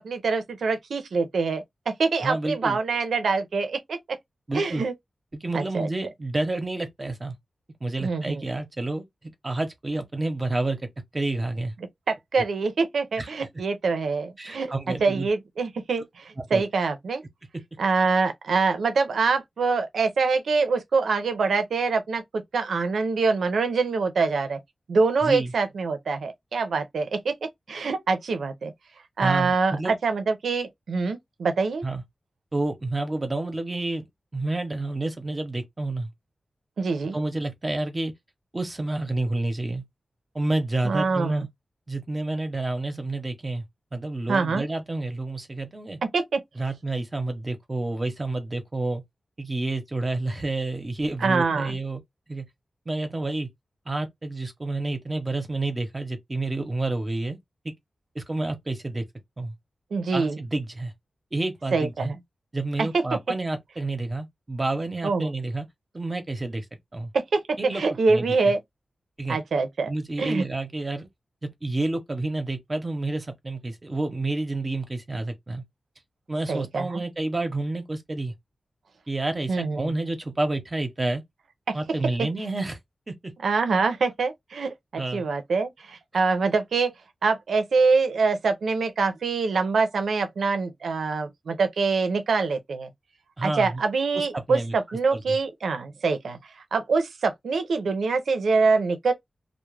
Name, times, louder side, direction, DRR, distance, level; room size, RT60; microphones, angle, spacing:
voice 1, 0.0-4.0 4.5-4.9 5.5-5.9 8.0-8.5 12.1-17.2 17.8-24.6 24.9-28.7 29.2-31.8 36.8-37.2 40.8-41.5 44.3-44.6 46.1-46.4 51.2-51.8 59.9-60.4 61.7-62.2 62.8-63.0 65.0-65.3 67.1-68.6 69.3-69.9 70.2-70.4 76.5-77.0 79.5-80.0 81.7-81.8 82.2-82.3 83.4-86.9 87.2-92.9 93.4-99.1, right 4 dB, 90° right, 0.5 m, -25 dB
voice 2, 2.2-2.8 4.5-4.8 5.3-7.4 7.8-9.0 9.4-10.9 11.1-11.7 13.2-13.3 14.4-15.3 16.5-16.6 25.2-25.5 29.2-29.9 31.8-32.0 32.5-34.0 34.3-36.1 37.1-38.1 38.5-39.8 40.3-41.5 41.9-43.6 43.9-46.0 46.6-49.0 49.4-52.0 52.3-52.4 52.9-53.5 53.9-57.4 57.6-57.7 58.1-59.0 59.4-59.5 60.1-60.9 61.3-62.1 62.5-65.7 65.9-66.6 66.9-67.1 67.6-67.8 68.1-68.5 69.2-69.4 69.9-71.1 71.4-75.6 76.3-78.3 79.1-81.2 81.7-82.8 83.1-83.3 85.0-85.3 93.4-93.8 94.1-95.4, right 2 dB, 35° right, 0.7 m, -29 dB
2.3 x 2.0 x 3.1 m
cardioid pair, 65°, 0 cm